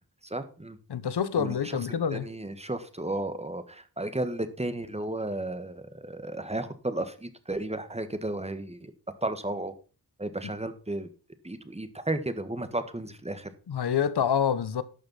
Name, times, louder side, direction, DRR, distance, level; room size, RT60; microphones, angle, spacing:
voice 1, 0.2-0.8 1.4-1.8 2.1-8.9 9.2-9.7 10.2-11.1 11.4-13.5, right 1 dB, 15° right, 1.5 m, -33 dB
voice 2, 0.9-2.3 13.7-14.8, left 8 dB, 90° left, 0.9 m, -27 dB
11.5 x 6.7 x 5.6 m
wide cardioid pair, 80°, 39 cm